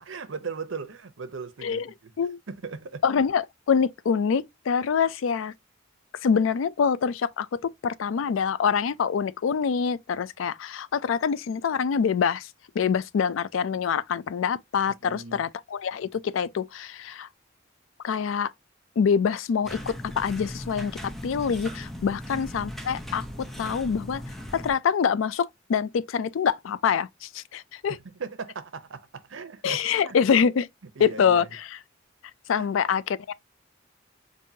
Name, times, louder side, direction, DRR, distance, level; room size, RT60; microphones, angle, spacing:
voice 1, 0.0-2.1 2.5-3.0 14.9-15.4 22.0-22.5 28.0-30.2 31.0-31.5 32.5-32.7, right 5 dB, 80° right, 0.7 m, -38 dB
voice 2, 3.0-5.5 6.2-7.5 7.8-12.5 12.8-17.3 18.0-18.5 19.0-23.2 23.6-24.2 24.5-28.0 29.6-30.7 31.0-31.4 32.5-33.3, left 6 dB, 90° left, 0.4 m, -25 dB
sound 1, 19.6-24.7, equal, ahead, 0.6 m, -38 dB
5.4 x 2.6 x 2.7 m
head